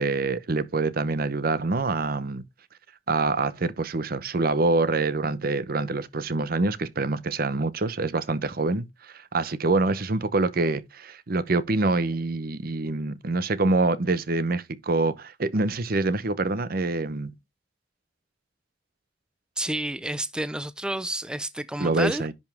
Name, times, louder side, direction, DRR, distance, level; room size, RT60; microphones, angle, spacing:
voice 1, 0.0-2.4 3.1-17.3 21.8-22.3, right 3 dB, 55° right, 0.8 m, -25 dB
voice 2, 19.6-22.2, right 1 dB, 5° right, 0.4 m, -30 dB
10.5 x 5.4 x 3.5 m
head